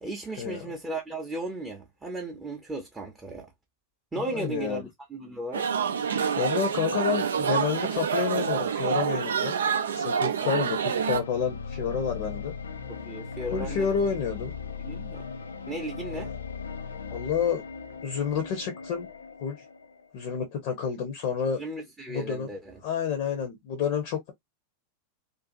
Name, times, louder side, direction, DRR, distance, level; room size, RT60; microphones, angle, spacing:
voice 1, 0.0-3.5 4.1-5.7 10.4-10.6 10.9-11.0 12.9-13.9 14.8-15.2 15.7-16.3 21.5-22.8, right 2 dB, 10° right, 0.7 m, -36 dB
voice 2, 4.3-4.8 6.3-9.5 9.9-12.5 13.5-14.5 16.2-16.3 17.1-17.6 18.0-19.1 19.4-19.6 20.1-21.6 22.1-22.5 22.8-24.3, left 7 dB, 45° left, 0.7 m, -29 dB
sound 1, 5.5-11.2, right 7 dB, 65° right, 0.4 m, -27 dB
sound 2, 11.1-20.2, left 6 dB, 70° left, 0.4 m, -38 dB
2.6 x 2.4 x 2.4 m
figure-of-eight pair, 90°, 0 cm